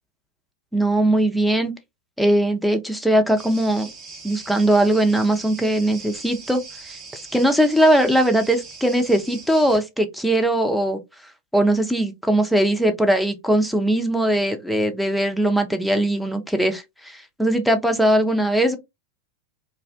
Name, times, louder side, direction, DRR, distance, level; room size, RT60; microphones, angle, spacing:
voice 1, 0.7-1.7 2.2-3.9 4.2-11.0 11.5-18.8, right 1 dB, ahead, 0.5 m, -20 dB
sound 1, 3.4-9.8, right 4 dB, 25° right, 0.8 m, -41 dB
2.5 x 2.0 x 2.5 m
figure-of-eight pair, 90°, 0 cm